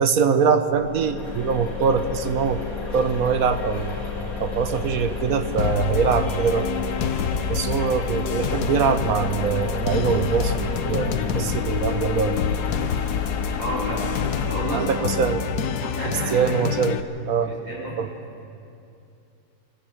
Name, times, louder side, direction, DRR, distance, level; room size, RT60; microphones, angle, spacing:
voice 1, 0.0-2.6 2.9-4.0 4.4-6.7 7.5-12.4 14.4-15.7 16.0-17.0 17.3-17.6 18.0-18.1, right 6 dB, 55° right, 10 dB, 1.3 m, -23 dB
sound 1, 0.7-14.5, left 5 dB, 45° left, 3.5 m, -31 dB
sound 2, 5.6-17.0, left 7 dB, 60° left, 1.2 m, -27 dB
voice 2, 13.6-14.1 14.5-15.1 15.4-15.5 15.8-16.5 17.4-17.9, right 1 dB, 80° right, -5 dB, 7.1 m, -31 dB
27.0 x 13.0 x 8.0 m, 2.7 s
omnidirectional pair, 2.0 m